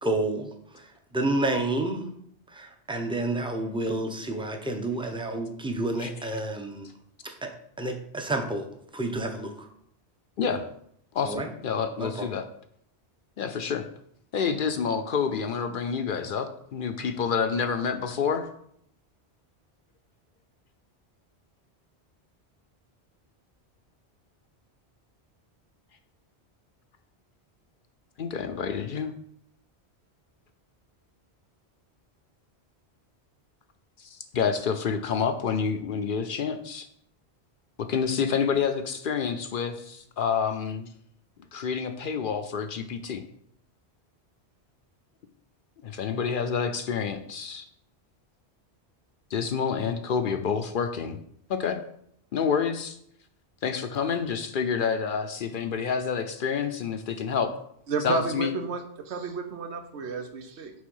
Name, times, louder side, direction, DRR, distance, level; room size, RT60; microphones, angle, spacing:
voice 1, 0.0-2.1 2.5-6.9 7.2-7.5 7.8-9.7 11.2-11.5 12.0-12.3, right 2 dB, 5° right, 0.6 m, -30 dB
voice 2, 11.1-12.4 13.4-13.9 14.3-18.5 28.2-29.1 34.0-36.9 37.8-40.9 41.5-43.2 45.8-47.6 49.3-51.2 51.5-51.8 52.3-53.0 53.6-57.5 58.0-58.5, left 6 dB, 60° left, 0.6 m, -28 dB
voice 3, 57.9-60.7, right 4 dB, 90° right, 1.1 m, -32 dB
6.4 x 3.6 x 5.4 m
omnidirectional pair, 1.1 m